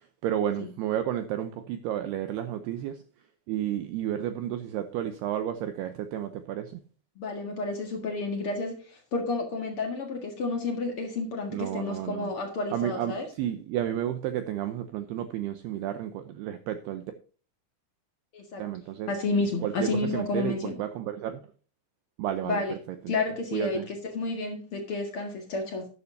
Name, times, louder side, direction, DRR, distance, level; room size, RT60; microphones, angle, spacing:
voice 1, 0.2-3.0 3.5-6.8 11.5-12.3 12.7-17.1 18.6-19.1 19.6-21.4 22.2-22.8 23.0-23.1 23.5-23.9, right 11 dB, 85° right, 2.3 m, -31 dB
voice 2, 7.1-13.2 18.3-18.6 19.1-20.7 22.4-22.7 23.1-25.9, left 3 dB, 75° left, 1.2 m, -31 dB
12.5 x 11.0 x 2.7 m
omnidirectional pair, 5.6 m